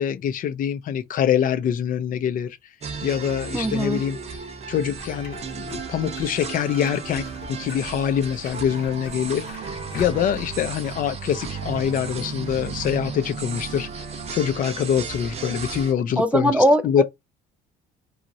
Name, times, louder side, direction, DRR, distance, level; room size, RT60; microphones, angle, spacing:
voice 1, 0.0-2.6 3.0-4.2 4.7-7.3 7.6-14.0 14.3-17.0, left 9 dB, 55° left, 0.5 m, -25 dB
sound 1, 2.8-15.9, right 5 dB, 40° right, 0.7 m, -34 dB
voice 2, 3.5-4.0 16.2-17.0, equal, 10° right, 0.4 m, -20 dB
sound 2, 4.9-10.6, left 4 dB, 75° left, 0.9 m, -43 dB
3.0 x 2.4 x 2.6 m
cardioid pair, 110°, 17 cm